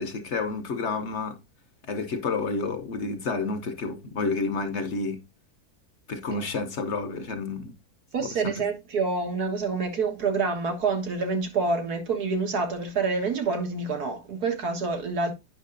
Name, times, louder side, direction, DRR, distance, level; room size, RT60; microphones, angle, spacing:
voice 1, 0.0-1.4 1.9-5.2 6.1-7.7 8.2-8.5, left 4 dB, 55° left, 1.0 m, -30 dB
voice 2, 8.1-15.3, right 4 dB, 85° right, 2.1 m, -27 dB
9.2 x 5.8 x 2.6 m
omnidirectional pair, 1.6 m